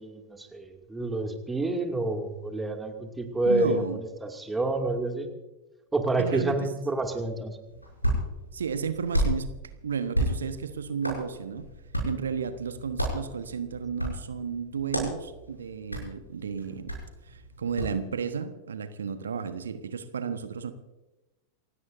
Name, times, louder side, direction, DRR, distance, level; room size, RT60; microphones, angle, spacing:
voice 1, 0.0-5.3 5.9-7.6, right 2 dB, 10° right, 4 dB, 2.5 m, -28 dB
voice 2, 3.5-4.0 6.2-6.7 8.5-9.5 9.8-11.7 12.0-17.0 17.3-20.7, right 6 dB, 70° right, 10 dB, 1.3 m, -33 dB
Hands, 7.6-18.0, equal, 90° left, 7.3 m, -33 dB
28.5 x 16.5 x 2.7 m, 1.1 s
figure-of-eight pair, 90°, 0 cm